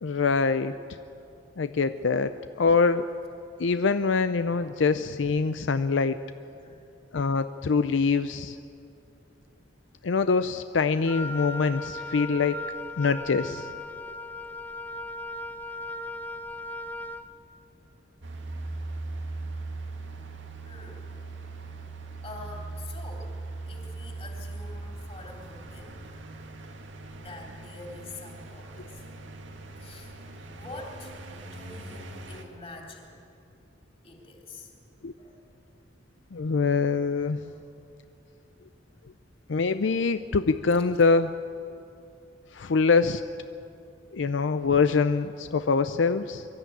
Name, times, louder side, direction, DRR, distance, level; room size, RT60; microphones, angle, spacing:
voice 1, 0.0-0.7 1.6-3.1 3.6-6.2 7.1-8.6 10.0-12.6 13.0-13.7 28.8-28.9 35.0-35.1 36.3-37.4 39.5-41.3 42.5-43.2 44.1-46.5, left 4 dB, 80° left, 11 dB, 0.5 m, -24 dB
Wind instrument woodwind instrument, 11.1-17.3, left 1 dB, 10° left, 0.6 m, -37 dB
sound 1, 18.2-32.4, right 2 dB, 80° right, 1.8 m, -40 dB
voice 2, 20.6-21.0 22.2-23.3 23.7-26.1 27.2-29.0 29.7-30.1 30.6-31.1 31.4-33.1 34.0-34.7 35.2-35.4 37.3-37.7, left 2 dB, 30° left, 0 dB, 3.5 m, -45 dB
23.0 x 13.0 x 9.3 m, 2.6 s
head